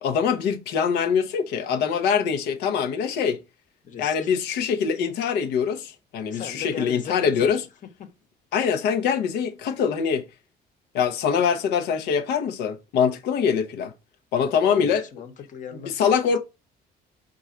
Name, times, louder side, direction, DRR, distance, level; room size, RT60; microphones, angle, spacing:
voice 1, 0.0-3.4 4.0-7.6 8.5-10.2 10.9-13.9 14.3-15.0 15.8-16.4, left 7 dB, 85° left, 0.8 m, -23 dB
voice 2, 3.8-4.3 6.3-8.1 14.4-16.4, left 7 dB, 50° left, 1.1 m, -39 dB
4.7 x 2.6 x 4.2 m
cardioid pair, 110°, 17 cm